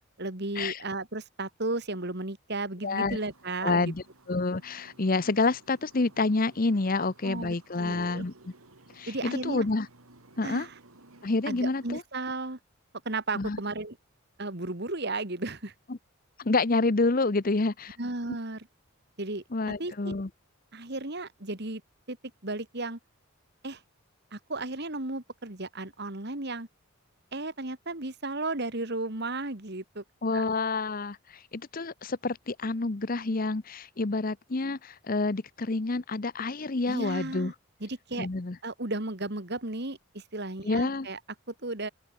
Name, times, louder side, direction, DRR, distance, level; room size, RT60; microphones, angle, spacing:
voice 1, 0.2-3.9 7.2-8.3 9.1-9.7 10.4-10.7 11.5-12.6 13.0-14.0 14.4-15.7 18.0-18.7 19.2-19.4 19.8-20.1 20.7-21.8 22.1-22.2 22.4-23.0 23.6-23.8 24.3-26.7 27.3-30.0 30.3-30.4 36.8-37.5 37.8-38.3 38.6-41.2 41.6-41.9, right 2 dB, 50° right, 2.6 m, -34 dB
voice 2, 2.8-3.2 3.6-8.3 8.9-9.9 10.4-10.7 11.2-12.0 13.4-13.6 15.9-16.0 16.4-18.0 19.5-20.3 30.2-37.5 38.2-38.6 40.6-41.1, left 3 dB, 40° left, 0.8 m, -28 dB
sound 1, 3.1-12.0, right 2 dB, 90° right, 2.9 m, -57 dB
open air
head